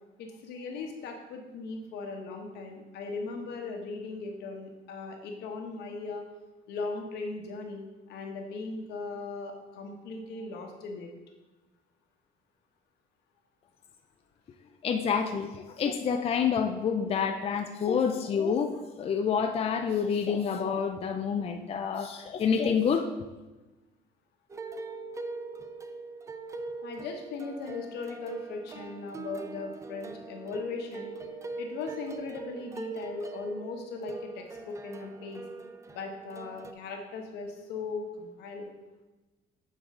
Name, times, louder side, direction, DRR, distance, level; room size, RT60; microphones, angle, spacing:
voice 1, 0.2-6.3 6.7-11.1 26.8-31.1 31.6-35.4 35.9-38.7, left 3 dB, 80° left, 3 dB, 1.1 m, -38 dB
voice 2, 14.8-18.7 19.0-23.0, left 6 dB, 35° left, 5 dB, 0.5 m, -28 dB
sound 1, 24.5-36.7, right 3 dB, 20° right, 0.4 m, -42 dB
8.5 x 4.7 x 3.7 m, 1.1 s
cardioid pair, 110°, 17 cm